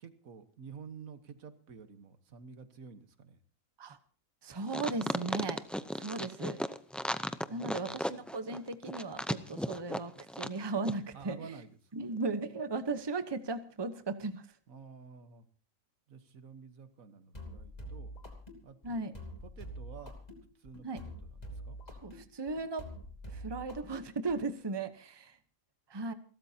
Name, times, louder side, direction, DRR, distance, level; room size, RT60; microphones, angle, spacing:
voice 1, 0.0-3.4 7.5-8.0 11.1-11.8 14.7-15.5 16.1-18.1 18.6-19.2 19.4-20.2 20.6-21.3 21.7-21.8, right 6 dB, 80° right, 10 dB, 1.7 m, -51 dB
voice 2, 4.4-5.6 5.9-6.6 7.5-10.1 10.4-11.6 11.9-14.5 18.8-19.1 20.8-21.0 22.0-22.9 23.3-25.4 25.9-26.1, right 3 dB, 20° right, 10 dB, 0.9 m, -36 dB
sound 1, 4.7-10.6 10.8-10.9, equal, ahead, 0.3 m, -35 dB
sound 2, 17.3-24.5, equal, 30° left, 3.1 m, -46 dB
29.0 x 13.0 x 2.8 m, 0.41 s
omnidirectional pair, 1.4 m